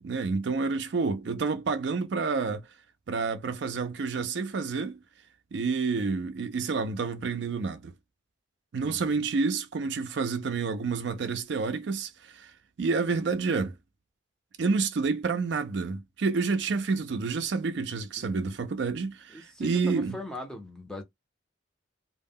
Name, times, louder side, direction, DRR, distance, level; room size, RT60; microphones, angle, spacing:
voice 1, 0.0-2.6 3.1-5.0 5.5-7.9 8.7-12.5 12.8-13.7 14.6-20.2, right 4 dB, 60° right, 0.4 m, -29 dB
voice 2, 19.3-21.0, left 2 dB, 5° left, 0.5 m, -40 dB
2.1 x 2.1 x 3.5 m
head